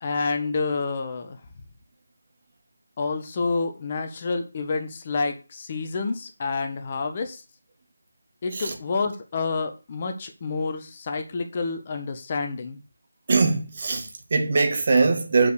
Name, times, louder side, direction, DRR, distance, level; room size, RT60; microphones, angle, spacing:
voice 1, 0.0-1.4 3.0-7.4 8.4-12.8, left 4 dB, 30° left, 1.3 m, -28 dB
voice 2, 13.3-15.5, right 4 dB, 40° right, 2.1 m, -22 dB
7.6 x 5.3 x 6.6 m
figure-of-eight pair, 165°, 0 cm